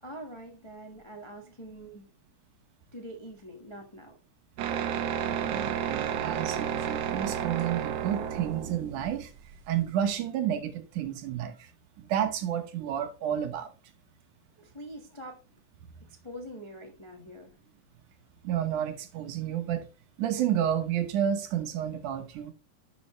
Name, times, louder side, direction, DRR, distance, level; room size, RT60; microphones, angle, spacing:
voice 1, 0.0-2.1 2.9-4.1 14.6-15.4 16.0-17.6, equal, 40° left, 0.4 m, -44 dB
sound 1, 4.6-10.0, right 8 dB, 70° right, 1.7 m, -32 dB
voice 2, 5.3-9.3 9.7-11.7 12.0-13.7 18.4-19.9 20.2-22.5, right 10 dB, 90° right, 2.7 m, -30 dB
11.5 x 5.5 x 3.1 m
omnidirectional pair, 3.4 m